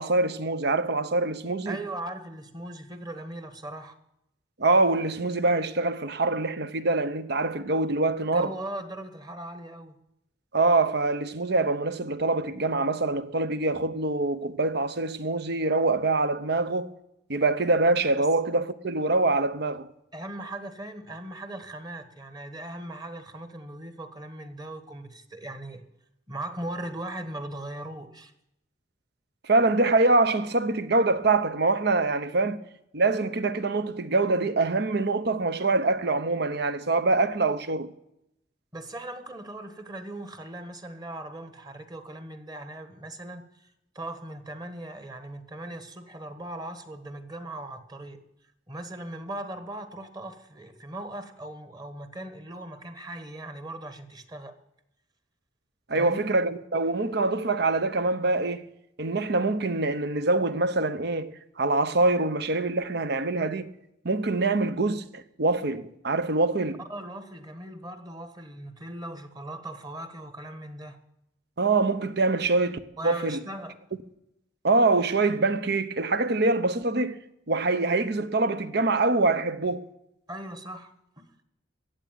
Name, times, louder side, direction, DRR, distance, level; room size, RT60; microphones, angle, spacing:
voice 1, 0.0-1.8 4.6-8.5 10.5-16.9 17.3-19.9 29.4-32.6 32.9-37.9 55.9-58.6 59.0-61.3 61.6-63.7 64.0-66.8 71.6-73.4 74.6-77.2 77.5-79.9, right 3 dB, 60° right, 0.9 m, -24 dB
voice 2, 1.6-4.0 8.3-10.0 20.1-25.8 26.3-28.3 32.4-32.5 38.7-48.2 48.7-54.5 55.9-56.2 66.9-71.0 73.0-73.8 80.3-81.4, right 1 dB, 20° right, 1.4 m, -39 dB
14.5 x 8.3 x 9.1 m
head